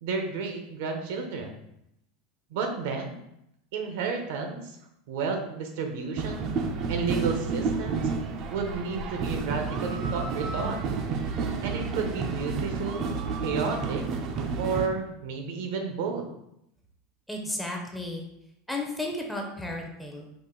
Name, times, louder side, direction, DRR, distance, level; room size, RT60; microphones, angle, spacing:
voice 1, 0.0-1.6 2.5-3.2 3.7-4.8 5.1-6.5 6.9-8.1 8.5-10.8 11.6-13.1 13.4-14.0 14.6-16.2, right 4 dB, 70° right, 5 dB, 0.8 m, -31 dB
sound 1, 6.2-14.9, right 4 dB, 45° right, 0.5 m, -30 dB
voice 2, 17.3-18.2 18.7-20.3, left 2 dB, 5° left, 0 dB, 0.7 m, -33 dB
4.9 x 2.5 x 3.8 m, 0.80 s
supercardioid pair, 140°, 0 cm